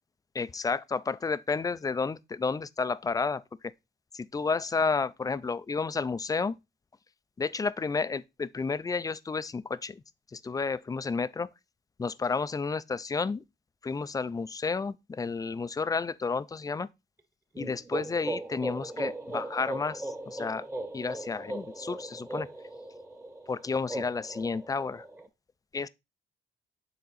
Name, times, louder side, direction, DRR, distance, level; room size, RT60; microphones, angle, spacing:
voice 1, 0.3-3.7 4.1-6.6 7.4-10.0 10.3-11.5 12.0-13.4 13.8-16.9 17.6-20.7 20.9-22.5 23.5-25.1 25.7-25.9, left 4 dB, 20° left, 0.3 m, -31 dB
sound 1, 17.5-25.3, right 1 dB, 10° right, 1.0 m, -38 dB
6.8 x 3.7 x 4.0 m
cardioid pair, 90°, 20 cm